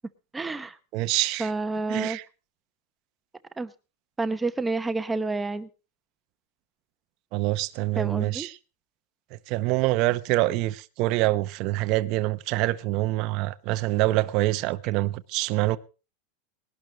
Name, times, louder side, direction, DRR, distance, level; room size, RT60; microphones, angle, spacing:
voice 1, 0.3-0.8 1.4-2.2 3.6-3.7 4.2-5.7 7.9-8.5, right 3 dB, 10° right, 0.9 m, -29 dB
voice 2, 0.9-1.5 1.9-2.2 7.3-8.5 9.3-15.8, right 18 dB, 40° right, 0.8 m, -25 dB
20.0 x 12.0 x 2.9 m
supercardioid pair, 160°, 0 cm